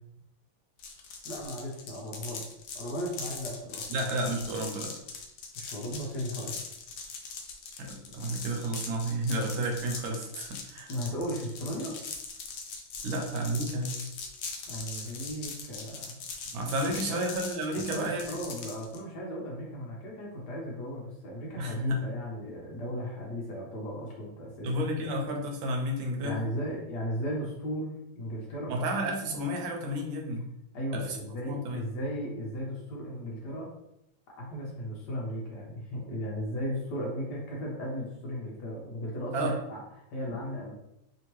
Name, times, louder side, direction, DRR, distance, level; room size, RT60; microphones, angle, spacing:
sound 1, 0.8-19.0, left 5 dB, 90° left, 1.4 m, -41 dB
voice 1, 1.2-2.5 2.7-4.1 5.5-6.6 10.9-12.0 14.7-16.2 16.6-16.7 17.1-17.2 17.9-24.8 26.2-28.7 30.7-33.7 34.4-39.8 40.1-40.7, equal, 65° left, -2 dB, 1.2 m, -36 dB
voice 2, 3.9-4.9 7.8-10.9 13.0-14.0 16.5-18.3 21.6-22.0 24.6-26.4 28.7-30.4 30.9-31.2 31.5-31.8 39.3-39.6 40.3-40.4, right 1 dB, 75° right, 1 dB, 1.4 m, -31 dB
3.4 x 2.8 x 3.0 m, 0.82 s
omnidirectional pair, 2.2 m